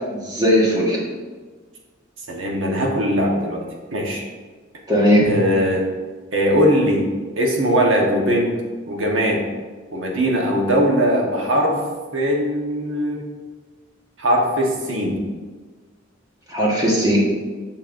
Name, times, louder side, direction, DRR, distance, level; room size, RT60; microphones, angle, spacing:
voice 1, 0.1-1.0 4.9-5.2 16.5-17.2, equal, 20° right, -3 dB, 1.3 m, -17 dB
voice 2, 2.3-3.6 3.9-4.2 5.3-5.8 6.3-7.1 7.4-8.5 8.9-9.4 9.9-11.8 12.1-13.2 14.2-15.2, equal, 75° right, 0 dB, 1.2 m, -20 dB
7.4 x 5.4 x 2.6 m, 1.4 s
head